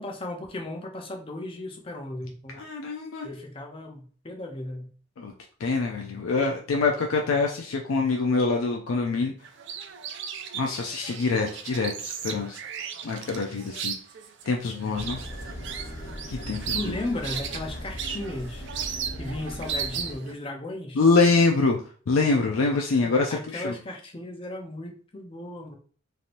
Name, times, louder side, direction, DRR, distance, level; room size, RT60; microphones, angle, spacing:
voice 1, 0.0-2.6 3.2-4.9 16.7-18.7 19.2-21.0 23.0-25.8, left 1 dB, 25° left, 2 dB, 0.5 m, -35 dB
voice 2, 2.6-3.3 5.2-5.3 5.6-9.3 10.5-12.6 13.0-13.9 14.5-15.2 16.3-16.9 21.0-21.8 22.1-23.7, left 3 dB, 80° left, 2 dB, 0.4 m, -25 dB
sound 1, 9.4-20.3, right 7 dB, 55° right, 0.4 m, -36 dB
sound 2, 14.9-20.2, equal, 50° left, 1.0 m, -38 dB
3.3 x 2.7 x 2.5 m, 0.43 s
head